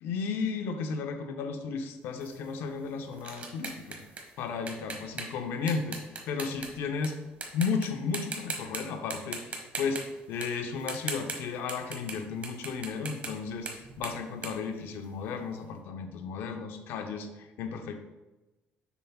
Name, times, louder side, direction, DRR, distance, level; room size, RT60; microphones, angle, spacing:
voice 1, 0.0-4.0 4.4-6.0 6.3-7.2 7.5-10.0 10.3-18.0, left 5 dB, 75° left, 6 dB, 0.7 m, -34 dB
sound 1, 2.2-7.1 7.4-7.9 8.1-8.8 9.1-12.2 12.4-15.4, right 4 dB, 35° right, 1.2 m, -39 dB
6.9 x 5.7 x 2.4 m, 1.1 s
cardioid pair, 110°, 4 cm